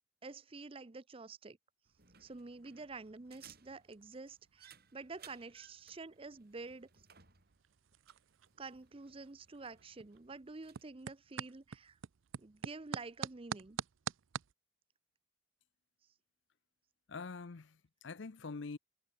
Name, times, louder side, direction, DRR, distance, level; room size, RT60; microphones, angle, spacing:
voice 1, 0.2-1.6 2.2-6.9 8.6-12.0 12.4-13.8, right 3 dB, 30° right, 0.6 m, -49 dB
sound 1, 1.8-14.5, right 7 dB, 85° right, 0.5 m, -49 dB
sound 2, 2.0-10.9, right 8 dB, 50° right, 7.2 m, -63 dB
voice 2, 17.1-18.8, left 4 dB, 70° left, 0.7 m, -45 dB
head